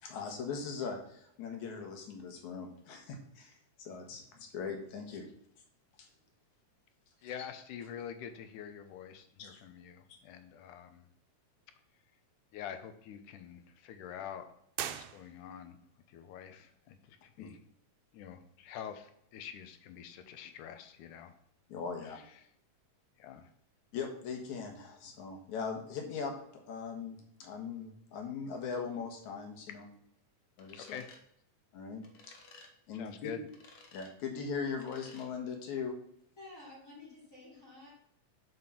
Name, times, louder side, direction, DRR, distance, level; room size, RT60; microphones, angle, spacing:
voice 1, 0.0-5.3 6.0-6.1 7.2-7.3 9.4-9.6 17.4-17.5 21.7-22.2 23.9-29.9 30.6-30.9 31.7-32.3 32.9-33.3 33.9-36.0, left 5 dB, 70° left, 3 dB, 2.9 m, -40 dB
voice 2, 7.2-11.0 12.5-14.5 15.0-15.8 16.1-17.6 18.1-21.3 23.2-23.5 30.7-31.1 32.9-33.4, left 9 dB, 85° left, 9 dB, 2.4 m, -46 dB
sound 1, 14.7-15.8, right 11 dB, 75° right, 1.9 m, -41 dB
sound 2, 30.6-31.2 32.0-32.7 33.5-34.1 34.8-35.3, left 3 dB, 55° left, 1.8 m, -56 dB
voice 3, 36.4-37.9, left 2 dB, 25° left, -8 dB, 3.9 m, -52 dB
7.8 x 5.9 x 5.9 m, 0.72 s
omnidirectional pair, 3.5 m